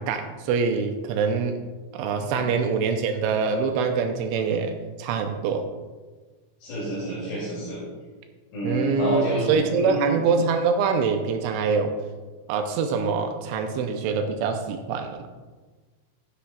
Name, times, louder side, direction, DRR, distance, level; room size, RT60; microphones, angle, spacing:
voice 1, 0.0-1.5 1.9-5.7 8.6-12.0 12.5-15.2, right 5 dB, 85° right, 5 dB, 2.8 m, -24 dB
voice 2, 6.6-7.8 8.5-10.1, equal, 60° left, -8 dB, 4.5 m, -28 dB
13.0 x 9.9 x 2.4 m, 1.4 s
omnidirectional pair, 5.9 m